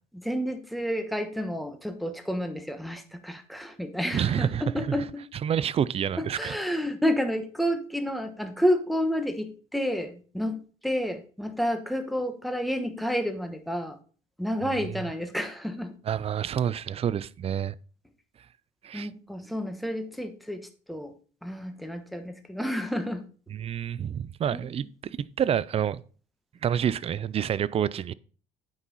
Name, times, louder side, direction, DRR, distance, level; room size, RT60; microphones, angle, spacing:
voice 1, 0.1-5.2 6.2-14.0 14.4-15.9 18.9-20.6 20.9-21.1 21.4-23.2 24.5-24.6, equal, ahead, 1.2 m, -30 dB
voice 2, 4.1-5.0 5.4-6.6 14.6-15.0 16.0-17.7 18.8-19.1 23.5-24.9 25.2-26.0 26.6-28.1, right 9 dB, 35° right, 0.4 m, -28 dB
8.9 x 5.6 x 4.1 m
cardioid pair, 110°, 17 cm